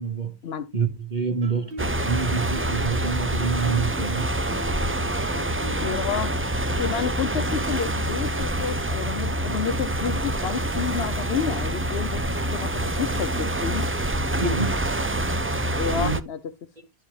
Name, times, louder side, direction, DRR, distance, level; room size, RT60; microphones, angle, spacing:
voice 1, 0.0-0.4 0.7-1.7 2.0-4.4 14.4-14.8 15.9-16.2, right 5 dB, 45° right, 1.5 m, -27 dB
Guitar, 1.4-9.1, left 2 dB, 65° right, 1.2 m, -42 dB
sound 1, 1.8-16.2, right 1 dB, 20° right, 0.4 m, -26 dB
voice 2, 5.8-6.4 6.8-12.2 12.5-13.9 15.7-16.4, left 7 dB, 80° left, 0.9 m, -30 dB
12.0 x 4.7 x 3.2 m
omnidirectional pair, 1.1 m